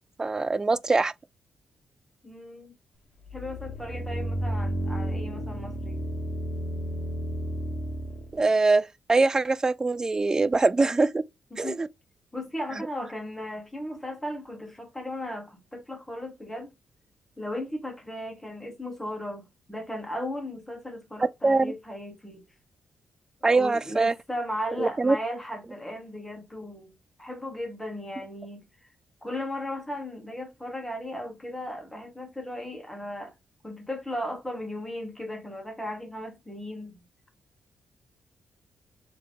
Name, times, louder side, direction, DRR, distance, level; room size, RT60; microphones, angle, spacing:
voice 1, 0.2-1.1 8.3-11.2 11.6-11.9 21.2-21.7 23.4-24.1 24.8-25.2, right 3 dB, 25° right, 0.3 m, -23 dB
voice 2, 2.2-2.7 3.3-6.0 11.5-11.8 12.3-16.7 17.4-22.4 23.5-26.9 27.2-28.6 29.2-33.3 33.6-37.0, left 1 dB, 10° left, 1.5 m, -36 dB
sound 1, 3.3-8.4, equal, 50° left, 1.2 m, -32 dB
3.4 x 2.8 x 3.5 m
supercardioid pair, 50°, 2 cm